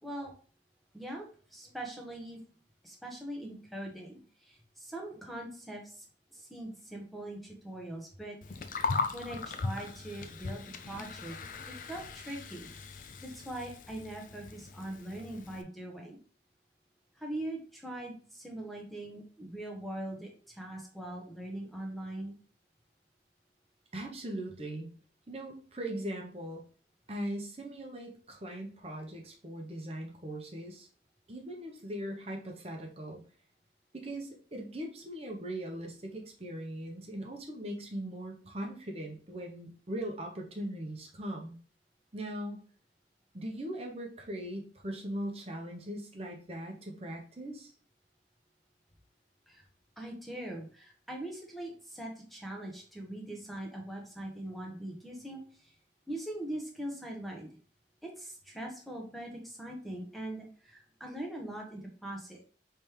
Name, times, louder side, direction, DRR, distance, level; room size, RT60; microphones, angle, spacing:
voice 1, 0.0-0.3 0.9-2.4 2.8-6.0 6.3-8.8 9.1-11.4 11.9-12.7 13.2-16.2 17.2-22.4 49.5-49.6 50.0-55.7 56.1-57.5 58.0-62.4, right 1 dB, ahead, 0 dB, 0.9 m, -42 dB
Gurgling, 8.4-15.6, left 4 dB, 50° left, 0.5 m, -38 dB
voice 2, 23.9-24.9 25.3-26.6 27.1-30.9 31.3-33.2 33.9-41.6 42.1-42.6 43.3-47.7, right 1 dB, 35° right, 2 dB, 0.9 m, -40 dB
5.2 x 3.4 x 2.9 m, 0.41 s
head